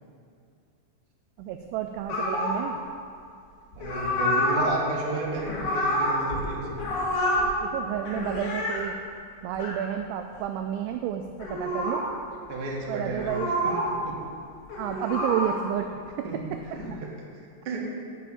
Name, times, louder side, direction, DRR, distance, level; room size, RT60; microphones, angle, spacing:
voice 1, 1.4-2.8 7.6-9.0 9.4-12.1 12.9-13.5 14.8-16.6, right 10 dB, 90° right, 6 dB, 2.6 m, -31 dB
sound 1, 2.1-2.7 3.7-4.7 5.3-6.5 6.7-7.5 8.0-8.8 9.5-9.8 11.3-12.1 13.1-13.9 14.6-15.7 16.5-16.9, left 1 dB, 65° left, 4.2 m, -28 dB
voice 2, 3.7-6.9 12.5-13.4 13.6-13.7 14.0-14.2 16.2-17.1 17.6-17.9, right 2 dB, 60° right, -4 dB, 1.5 m, -33 dB
11.5 x 5.7 x 8.6 m, 2.4 s
omnidirectional pair, 5.9 m